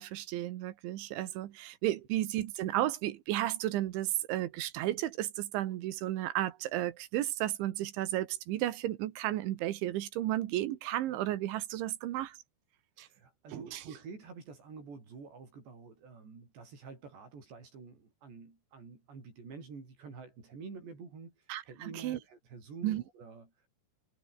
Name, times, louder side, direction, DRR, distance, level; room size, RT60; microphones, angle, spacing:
voice 1, 0.0-12.4 13.0-13.1 13.5-13.8 21.5-22.2 22.8-23.0, right 14 dB, 75° right, 3.6 m, -33 dB
voice 2, 13.0-23.5, right 4 dB, 60° right, 9.3 m, -48 dB
omnidirectional pair, 5.6 m